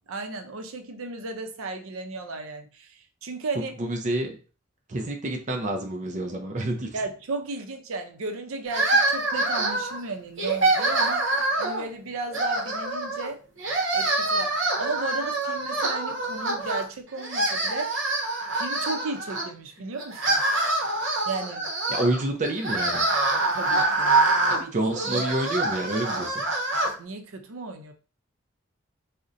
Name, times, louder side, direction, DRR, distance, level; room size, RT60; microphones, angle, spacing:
voice 1, 0.1-3.7 6.9-11.3 11.6-13.4 13.9-18.0 18.6-20.4 21.3-21.7 23.5-24.1 24.5-24.7 27.0-27.9, right 3 dB, 85° right, 5 dB, 0.5 m, -34 dB
voice 2, 3.5-4.4 4.9-7.0 21.9-23.1 24.7-26.4, right 1 dB, 35° right, 3 dB, 0.4 m, -28 dB
sound 1, 8.7-10.0 10.4-11.8 12.3-13.3 13.6-16.9 17.2-19.4 20.0-26.9, right 2 dB, 65° right, 0.8 m, -25 dB
2.6 x 2.1 x 3.7 m, 0.35 s
head